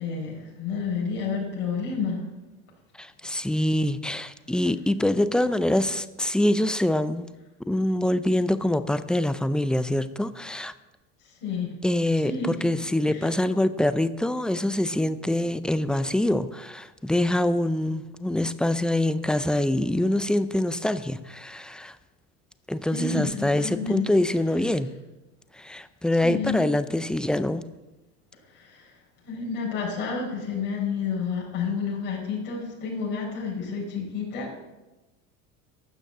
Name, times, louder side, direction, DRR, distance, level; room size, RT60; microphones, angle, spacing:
voice 1, 0.0-2.2 11.4-11.7 12.2-12.5 13.1-13.2 22.9-24.1 26.2-26.6 28.5-28.9 29.2-34.6, left 5 dB, 70° left, -3 dB, 4.7 m, -30 dB
voice 2, 3.0-7.3 7.7-10.7 11.8-22.0 22.7-25.0 25.5-27.7, left 1 dB, ahead, 13 dB, 0.4 m, -25 dB
12.5 x 6.3 x 7.8 m, 1.1 s
supercardioid pair, 110°, 38 cm